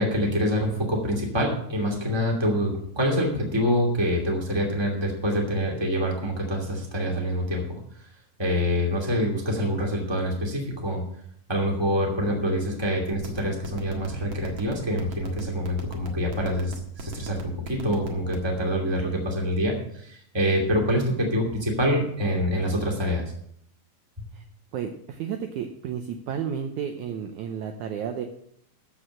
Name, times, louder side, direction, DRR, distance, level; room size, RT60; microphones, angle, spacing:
voice 1, 0.0-7.8 8.4-11.0 11.5-23.2 24.2-24.3, equal, 10° right, 0 dB, 2.0 m, -26 dB
sound 1, 13.1-18.5, right 5 dB, 45° right, 1.7 m, -36 dB
voice 2, 24.7-28.3, right 8 dB, 75° right, 5 dB, 1.9 m, -32 dB
14.0 x 5.0 x 7.6 m, 0.69 s
omnidirectional pair, 4.1 m